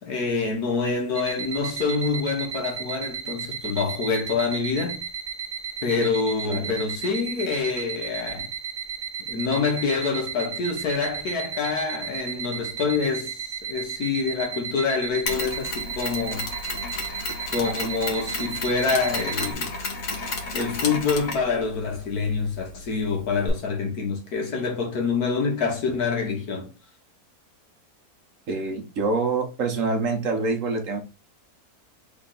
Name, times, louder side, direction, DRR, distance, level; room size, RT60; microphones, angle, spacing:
voice 1, 0.0-5.0 5.8-8.5 9.3-16.5 17.5-19.7 20.5-26.7, left 4 dB, 80° left, 1.7 m, -26 dB
sound 1, 1.1-19.5, right 7 dB, 85° right, 0.4 m, -34 dB
Mechanisms, 15.3-23.5, left 3 dB, 65° left, 1.5 m, -33 dB
voice 2, 28.5-31.0, right 3 dB, 60° right, 1.3 m, -26 dB
3.7 x 3.5 x 3.9 m
omnidirectional pair, 1.6 m